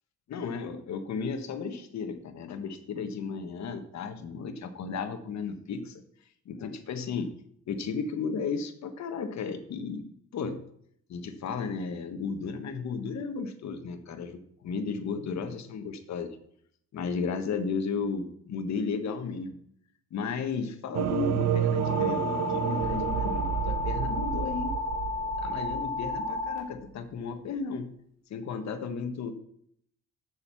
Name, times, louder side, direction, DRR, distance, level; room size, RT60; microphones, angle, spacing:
voice 1, 0.3-6.0 6.4-7.3 7.7-10.0 10.3-10.6 11.1-16.3 16.9-19.6 20.1-24.7 25.4-27.9 28.3-29.3, left 5 dB, 65° left, 8 dB, 1.4 m, -34 dB
sound 1, 20.9-26.6, right 9 dB, 60° right, 0.7 m, -30 dB
sound 2, 21.8-26.6, left 3 dB, 75° right, 2.9 m, -32 dB
7.4 x 6.5 x 6.9 m, 0.68 s
cardioid pair, 90°, 30 cm